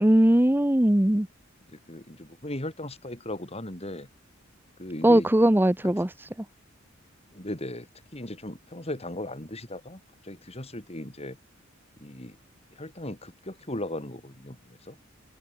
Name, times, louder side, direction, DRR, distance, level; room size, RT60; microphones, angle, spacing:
voice 1, 0.0-1.3 5.0-6.3, right 1 dB, 10° right, 0.7 m, -20 dB
voice 2, 1.7-4.1 4.8-5.3 5.8-6.1 7.3-11.4 12.0-12.4 12.8-15.0, left 1 dB, 30° left, 4.9 m, -37 dB
open air
head